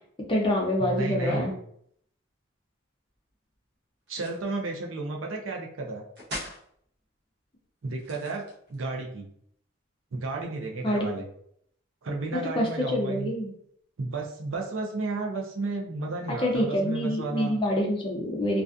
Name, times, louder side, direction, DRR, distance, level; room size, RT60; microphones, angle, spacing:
voice 1, 0.3-1.5 10.8-11.1 12.5-13.5 16.4-18.6, equal, 25° left, -1 dB, 0.5 m, -26 dB
voice 2, 0.8-1.6 4.1-6.1 7.8-8.4 8.7-9.3 10.1-11.3 12.0-13.3 14.0-17.6, right 3 dB, 80° right, 0 dB, 0.5 m, -32 dB
sound 1, 4.1-4.5 6.2-6.6 7.9-8.8, left 1 dB, 55° right, 0.8 m, -39 dB
2.4 x 2.3 x 2.5 m, 0.67 s
head